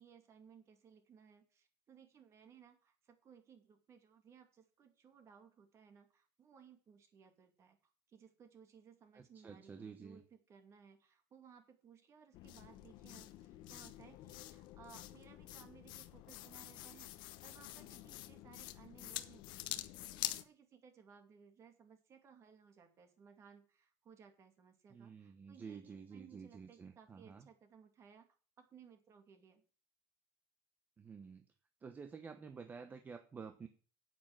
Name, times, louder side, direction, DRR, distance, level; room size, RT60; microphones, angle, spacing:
voice 1, 0.0-7.8 8.1-19.8 20.1-28.3 28.6-29.6, right 7 dB, 35° right, 6 dB, 2.4 m, -62 dB
voice 2, 9.1-10.2 24.9-27.5 31.0-31.5 31.8-33.7, right 5 dB, 20° right, 7 dB, 0.9 m, -51 dB
sound 1, 12.3-20.4, left 15 dB, 65° left, 0.9 m, -47 dB
9.3 x 9.0 x 6.0 m, 0.38 s
cardioid pair, 150°, 8 cm